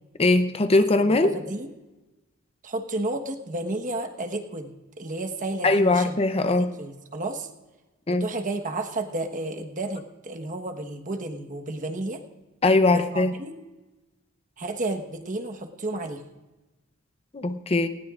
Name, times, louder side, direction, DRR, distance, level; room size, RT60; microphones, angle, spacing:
voice 1, 0.2-1.3 5.6-6.7 8.1-8.3 12.6-13.3 17.3-17.9, left 2 dB, 30° left, 10 dB, 0.6 m, -20 dB
voice 2, 1.0-1.7 2.6-6.2 6.5-7.5 8.1-12.2 12.9-13.6 14.6-16.2, right 2 dB, 40° right, 4 dB, 1.2 m, -32 dB
19.5 x 17.0 x 2.5 m, 1.1 s
head